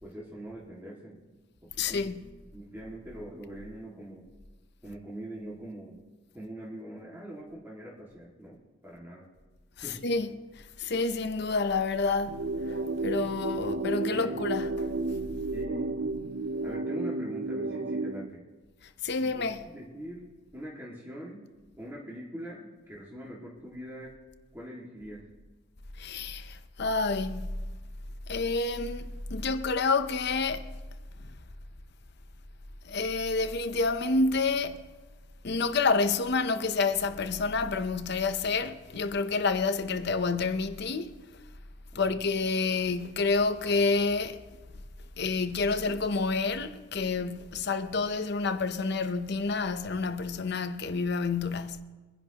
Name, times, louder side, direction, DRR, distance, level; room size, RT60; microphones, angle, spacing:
voice 1, 0.0-1.2 1.6-2.2 2.5-4.2 4.8-6.0 6.3-8.6 8.8-9.2 9.8-10.0 13.6-13.7 14.1-14.4 15.5-15.9 16.6-18.4 19.2-21.4 21.8-24.1 24.5-25.2 41.9-42.2, right 1 dB, 10° right, 2.0 m, -43 dB
voice 2, 1.8-2.1 10.0-10.3 10.8-12.4 13.0-14.7 19.0-19.6 26.0-27.4 28.3-30.7 32.8-34.8 35.4-41.2 41.9-44.4 45.2-51.8, left 4 dB, 55° left, 0.7 m, -28 dB
sound 1, 12.3-18.3, right 2 dB, 65° right, 0.6 m, -32 dB
25.0 x 10.5 x 3.0 m
head